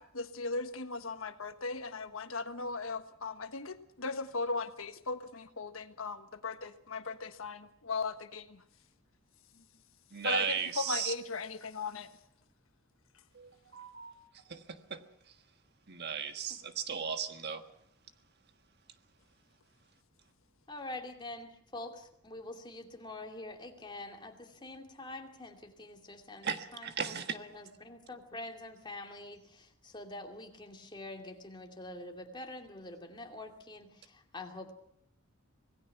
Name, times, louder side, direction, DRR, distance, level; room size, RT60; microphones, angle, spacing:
voice 1, 0.0-8.6 10.2-12.1, left 3 dB, 70° left, 1.4 m, -38 dB
voice 2, 10.1-11.1 13.3-14.1 14.5-14.6 14.9-15.0 15.9-17.6 26.4-27.4, right 7 dB, 50° right, 1.5 m, -36 dB
voice 3, 20.7-34.7, left 2 dB, 20° left, 2.6 m, -46 dB
26.0 x 18.5 x 5.9 m
head